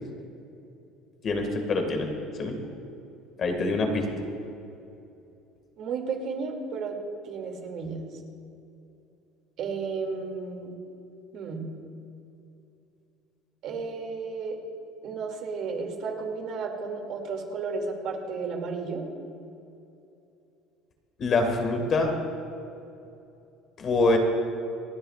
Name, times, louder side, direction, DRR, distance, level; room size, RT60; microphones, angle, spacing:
voice 1, 1.2-2.6 3.4-4.1 21.2-22.1 23.8-24.2, left 3 dB, 40° left, 3 dB, 1.9 m, -25 dB
voice 2, 5.8-7.0 7.2-8.0 9.6-10.7 11.3-11.6 13.6-14.6 15.0-19.0, right 4 dB, 55° right, 2 dB, 2.4 m, -33 dB
28.5 x 10.0 x 2.4 m, 2.7 s
cardioid pair, 125°, 0 cm